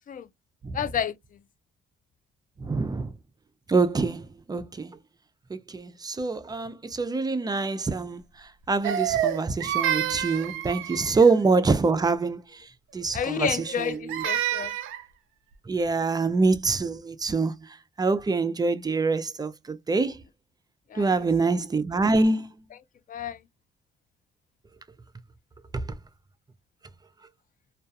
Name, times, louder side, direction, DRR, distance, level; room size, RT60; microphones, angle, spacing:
voice 1, 0.7-1.2 13.1-14.7 20.9-21.3 23.1-23.4, left 8 dB, 45° left, 0.4 m, -30 dB
voice 2, 2.6-3.1 3.7-5.0 5.5-8.2 8.7-12.4 12.9-13.5 14.1-14.2 15.7-17.6 18.0-20.2 20.9-22.5 25.7-25.8, right 3 dB, 20° right, 0.4 m, -25 dB
Crying sobbing, 8.8-11.4 13.6-15.0, right 10 dB, 80° right, 0.5 m, -28 dB
2.3 x 2.2 x 2.7 m
cardioid pair, 90°, 20 cm